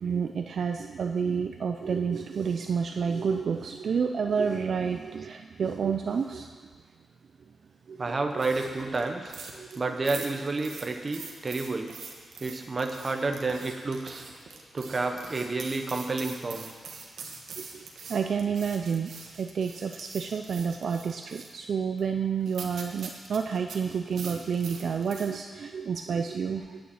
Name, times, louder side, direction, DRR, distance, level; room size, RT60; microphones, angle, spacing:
voice 1, 0.0-6.5 7.9-8.2 9.6-9.7 17.6-17.7 18.1-19.1 19.4-26.8, right 6 dB, 55° right, 5 dB, 0.4 m, -29 dB
voice 2, 8.0-9.3 9.8-11.9 12.4-14.2 14.7-16.6, right 3 dB, 30° right, 4 dB, 0.9 m, -30 dB
sound 1, 8.3-25.3, right 4 dB, 75° right, 1.4 m, -44 dB
8.7 x 7.0 x 8.8 m, 1.5 s
wide cardioid pair, 175°, 0 cm